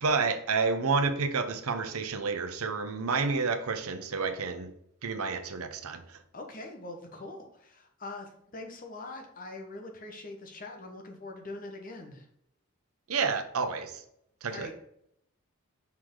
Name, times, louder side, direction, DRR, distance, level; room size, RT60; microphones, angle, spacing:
voice 1, 0.0-4.7 5.0-6.2 13.1-14.0 14.4-14.7, right 4 dB, 85° right, 8 dB, 0.8 m, -30 dB
voice 2, 6.3-12.3 14.5-14.7, left 2 dB, 40° left, 3 dB, 1.1 m, -43 dB
5.8 x 4.9 x 3.8 m, 0.74 s
head